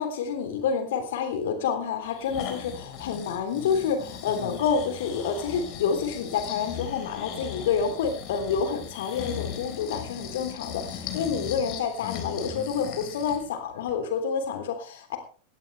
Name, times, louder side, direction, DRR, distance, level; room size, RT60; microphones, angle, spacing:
voice 1, 0.0-15.2, left 6 dB, 55° left, 7 dB, 3.4 m, -28 dB
Breathing, 2.0-13.4 13.9-14.0, left 8 dB, 40° left, 3.6 m, -38 dB
18.0 x 14.0 x 3.4 m, 0.39 s
figure-of-eight pair, 90°, 0 cm